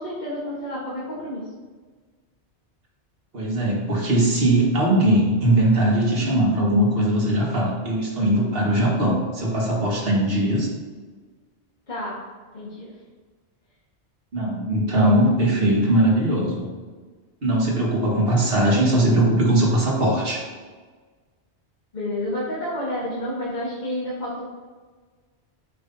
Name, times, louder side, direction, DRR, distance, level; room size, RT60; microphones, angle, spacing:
voice 1, 0.0-1.5 10.3-10.5 11.9-12.2 12.5-12.9 21.9-24.4, left 1 dB, 45° left, -7 dB, 1.4 m, -30 dB
voice 2, 3.3-10.7 14.3-16.6 17.4-20.4, right 1 dB, 60° right, -3 dB, 1.7 m, -20 dB
7.8 x 5.6 x 2.7 m, 1.4 s
omnidirectional pair, 1.1 m